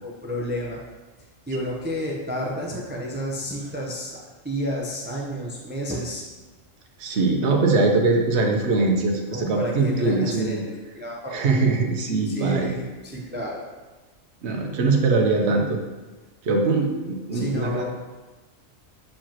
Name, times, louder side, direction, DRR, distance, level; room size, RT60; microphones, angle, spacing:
voice 1, 0.0-0.8 1.5-4.1 4.4-6.2 9.3-11.4 12.3-12.8 13.1-13.6 17.3-17.9, equal, 10° right, -3 dB, 0.6 m, -30 dB
voice 2, 7.0-10.6 11.3-12.7 14.4-15.8 16.4-17.9, right 3 dB, 60° right, 1 dB, 1.1 m, -22 dB
7.3 x 4.7 x 3.0 m, 1.2 s
omnidirectional pair, 1.4 m